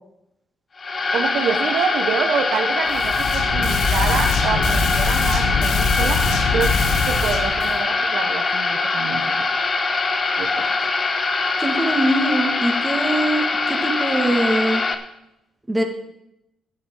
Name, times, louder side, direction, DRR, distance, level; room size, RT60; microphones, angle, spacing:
sound 1, 0.8-14.9, left 3 dB, 40° left, 1.2 m, -22 dB
voice 1, 1.1-6.2 6.5-6.7 7.0-9.2 10.4-10.6, right 6 dB, 75° right, 6 dB, 1.2 m, -26 dB
sound 2, 2.9-7.8, left 4 dB, 85° left, 1.9 m, -23 dB
voice 2, 11.6-14.8 15.7-15.8, right 1 dB, 15° right, 3 dB, 2.2 m, -22 dB
10.5 x 9.7 x 5.6 m, 0.83 s
cardioid pair, 90°, 0 cm